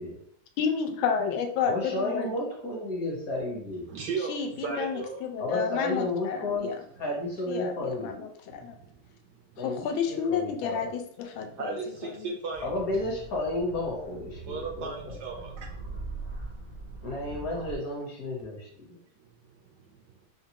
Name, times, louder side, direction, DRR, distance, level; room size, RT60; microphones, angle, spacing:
voice 1, 0.6-2.3 4.3-6.7 7.5-8.7 9.6-11.7 12.1-12.3, left 6 dB, 85° left, 5 dB, 1.4 m, -31 dB
voice 2, 1.6-3.9 5.4-8.1 9.6-10.9 12.6-15.2 17.0-19.0, left 2 dB, 50° left, -2 dB, 1.4 m, -32 dB
voice 3, 3.7-5.5 8.5-9.6 11.3-12.7 14.5-16.4 16.9-17.0 19.2-20.3, right 4 dB, 70° right, 0 dB, 1.0 m, -38 dB
sound 1, 12.5-17.8, right 3 dB, 85° right, 1.8 m, -42 dB
5.6 x 2.2 x 2.8 m, 0.64 s
omnidirectional pair, 2.2 m